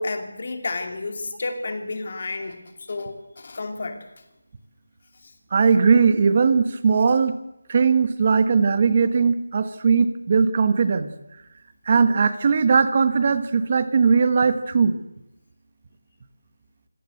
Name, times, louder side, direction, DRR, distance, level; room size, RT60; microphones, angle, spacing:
voice 1, 0.0-4.0, left 3 dB, 35° left, 6 dB, 2.8 m, -31 dB
voice 2, 5.5-7.4 7.7-11.1 11.9-14.9, right 5 dB, 25° right, 12 dB, 1.3 m, -19 dB
26.5 x 17.0 x 7.9 m, 0.92 s
figure-of-eight pair, 175°, 0 cm